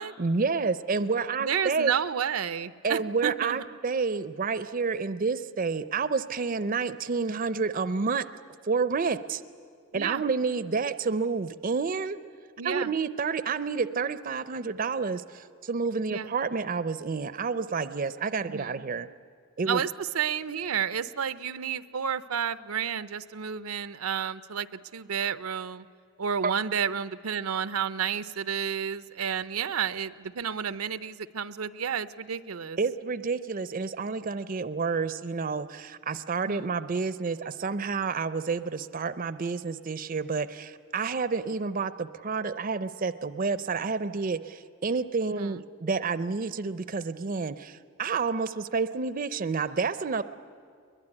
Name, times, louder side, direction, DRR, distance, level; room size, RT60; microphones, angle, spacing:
voice 1, 0.2-1.9 2.8-8.2 8.6-9.4 9.9-12.2 12.6-19.1 19.6-19.8 26.4-26.5 32.8-50.2, right 4 dB, 40° right, 14 dB, 0.5 m, -29 dB
voice 2, 1.4-3.6 9.9-10.2 12.6-12.9 16.1-16.3 18.5-18.8 19.7-24.7 24.9-25.9 26.2-32.8 36.4-36.7 45.3-45.5, right 7 dB, 80° right, 14 dB, 0.6 m, -31 dB
21.5 x 21.5 x 9.9 m, 2.2 s
head